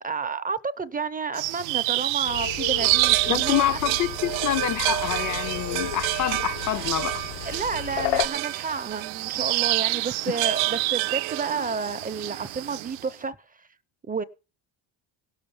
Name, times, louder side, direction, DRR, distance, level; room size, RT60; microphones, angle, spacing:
voice 1, 0.0-3.8 7.5-13.7 14.1-14.2, right 5 dB, 20° right, 0.6 m, -31 dB
sound 1, 1.3-13.0, right 20 dB, 85° right, 0.6 m, -27 dB
sound 2, 2.3-8.3, left 12 dB, 75° left, 1.1 m, -33 dB
voice 2, 3.3-7.2, left 11 dB, 45° left, 0.5 m, -27 dB
17.0 x 6.5 x 7.0 m
cardioid pair, 140°, 46 cm